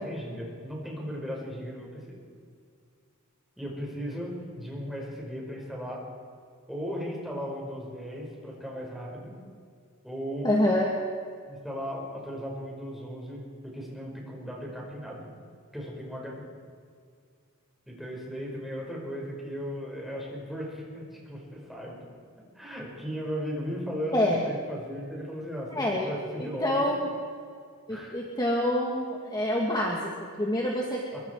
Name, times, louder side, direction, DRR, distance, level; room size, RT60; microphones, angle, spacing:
voice 1, 0.0-2.2 3.6-6.0 6.7-9.4 10.0-10.6 11.5-15.2 15.7-16.4 17.9-22.0 22.5-26.9 27.9-28.2 31.1-31.2, equal, ahead, -3 dB, 5.7 m, -36 dB
voice 2, 10.4-10.9 24.1-24.4 25.7-26.1 26.4-27.1 27.9-31.0, left 1 dB, 20° left, -1 dB, 2.1 m, -27 dB
24.5 x 23.5 x 4.8 m, 2.2 s
head